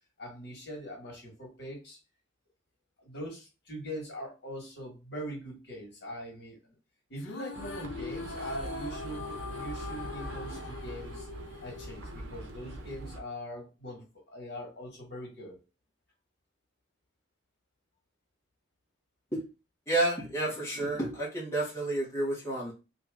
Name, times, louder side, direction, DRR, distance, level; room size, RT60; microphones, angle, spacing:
voice 1, 0.2-2.0 3.0-6.6 7.1-11.3 11.6-15.6, equal, 60° left, -1 dB, 1.5 m, -42 dB
sound 1, 7.2-12.7, left 4 dB, 75° left, 0.5 m, -42 dB
sound 2, 7.5-13.2, right 2 dB, 90° right, 0.7 m, -42 dB
voice 2, 19.9-22.7, right 2 dB, 15° left, -6 dB, 1.0 m, -30 dB
2.9 x 2.8 x 3.5 m, 0.29 s
head